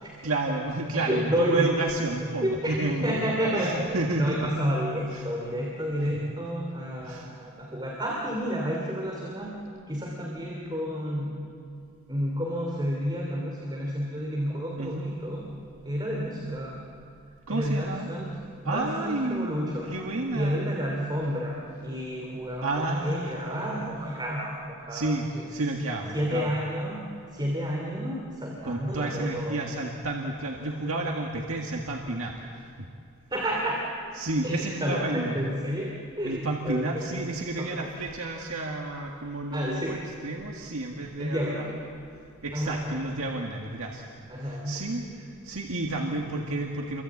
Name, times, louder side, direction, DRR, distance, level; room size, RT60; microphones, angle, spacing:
voice 1, 0.2-3.2 3.5-4.4 5.1-5.3 7.0-7.3 14.8-15.1 17.5-18.1 18.6-19.6 19.9-20.6 22.6-24.0 24.9-26.5 28.6-32.7 34.2-35.4 36.2-42.0 42.4-44.0 44.4-47.0, right 2 dB, 70° right, 0 dB, 1.9 m, -31 dB
voice 2, 0.9-1.7 2.4-11.4 12.1-15.5 15.8-16.8 17.5-20.0 20.3-25.5 26.1-29.6 33.3-33.9 34.4-37.3 37.6-37.9 39.5-40.0 41.2-41.8 42.5-43.1 44.3-44.8, equal, 20° right, -2 dB, 2.8 m, -30 dB
29.0 x 24.0 x 8.6 m, 2.4 s
head